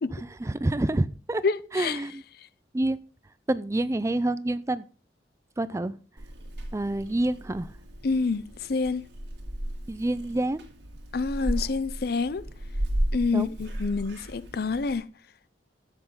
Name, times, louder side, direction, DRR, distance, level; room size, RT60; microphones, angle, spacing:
voice 1, 0.1-1.4 1.7-2.2 2.7-3.0 3.5-4.8 5.6-6.0 6.7-7.7 9.9-10.6 13.3-13.5, right 1 dB, 15° right, 0.4 m, -27 dB
voice 2, 1.4-2.0 8.0-9.0 11.1-12.5 13.1-15.0, left 4 dB, 60° left, 0.5 m, -27 dB
Purr / Meow, 6.2-15.0, right 1 dB, 70° right, 2.2 m, -35 dB
13.0 x 7.9 x 3.8 m
head